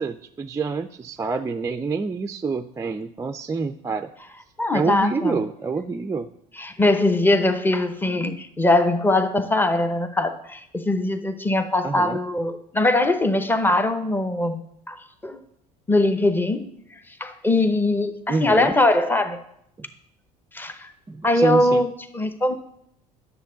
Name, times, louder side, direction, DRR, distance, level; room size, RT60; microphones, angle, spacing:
voice 1, 0.0-4.1 4.7-6.3 8.3-8.4 11.8-12.2 18.3-18.7 21.1-21.8, right 4 dB, 15° right, 7 dB, 0.4 m, -27 dB
voice 2, 4.6-5.4 6.6-14.6 14.9-15.4 15.9-16.7 17.2-19.4 20.5-20.9 21.2-22.5, left 2 dB, 10° left, 9 dB, 0.8 m, -21 dB
9.4 x 6.8 x 3.8 m, 0.75 s
hypercardioid pair, 75°, 19 cm